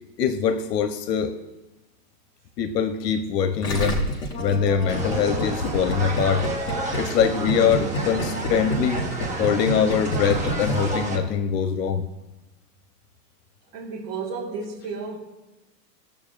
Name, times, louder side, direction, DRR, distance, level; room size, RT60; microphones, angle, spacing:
voice 1, 0.2-1.3 2.6-4.0 4.4-6.5 7.0-9.0 9.4-12.1, left 7 dB, 75° left, 9 dB, 0.9 m, -23 dB
Gurgling, 3.6-11.5, equal, 10° left, 0.4 m, -28 dB
sound 1, 4.3-6.6 7.4-10.7, equal, 25° left, 1.8 m, -37 dB
sound 2, 4.9-11.2, right 2 dB, 15° right, 0.8 m, -31 dB
voice 2, 13.7-15.2, right 4 dB, 30° right, -5 dB, 1.7 m, -32 dB
18.0 x 7.1 x 2.4 m, 1.0 s
supercardioid pair, 155°, 50 cm